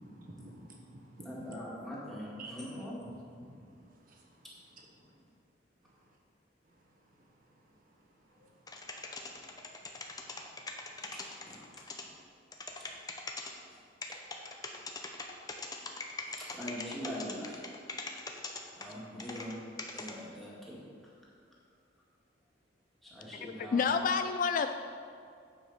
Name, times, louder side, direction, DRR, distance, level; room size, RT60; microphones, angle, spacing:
voice 1, 0.0-1.6 2.4-2.6 3.4-4.4 8.3-8.6 10.2-10.3, right 2 dB, 50° right, 0 dB, 1.2 m, -51 dB
voice 2, 1.2-2.9 11.1-11.7 13.1-13.2 14.3-14.5 16.2-17.6 18.8-19.5 19.9-20.8 23.0-23.9, equal, ahead, -7 dB, 2.0 m, -43 dB
sound 1, 8.7-12.0 12.5-13.5 14.0-19.5 19.8-20.1, left 4 dB, 20° left, 0.7 m, -41 dB
voice 3, 23.4-24.7, left 5 dB, 45° left, 8 dB, 0.3 m, -29 dB
9.4 x 5.0 x 5.7 m, 2.3 s
head